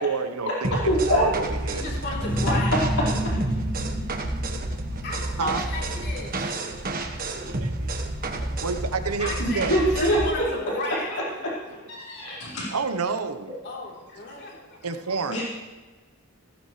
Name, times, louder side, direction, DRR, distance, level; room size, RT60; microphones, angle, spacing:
voice 1, 0.0-0.8 1.1-2.0 4.9-5.0 5.4-5.6 7.0-9.7 12.2-13.6 14.3-14.4 14.8-15.4, right 5 dB, 85° right, 8 dB, 1.1 m, -30 dB
sound 1, 0.6-10.3, right 1 dB, 40° right, 1.3 m, -30 dB
voice 2, 0.9-1.2 3.5-3.6 9.4-10.4 10.8-11.5 11.9-12.7 15.3-15.4, equal, 75° left, -6 dB, 4.7 m, -25 dB
voice 3, 1.7-2.8 5.0-6.3 7.2-7.4 9.2-11.2 13.6-14.8, left 2 dB, 50° left, -3 dB, 3.6 m, -34 dB
sound 2, 2.1-7.6, equal, 25° left, 1.6 m, -31 dB
16.0 x 15.5 x 3.3 m, 1.3 s
head